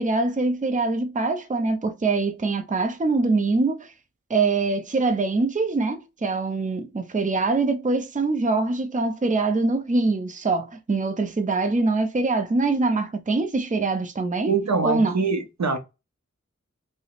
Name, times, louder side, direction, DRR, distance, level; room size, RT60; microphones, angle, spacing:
voice 1, 0.0-3.9 4.3-14.5 14.8-15.2, right 3 dB, 25° right, 0.5 m, -23 dB
voice 2, 14.4-15.8, right 4 dB, 70° right, 0.6 m, -24 dB
2.9 x 2.0 x 3.9 m
wide cardioid pair, 50°, 29 cm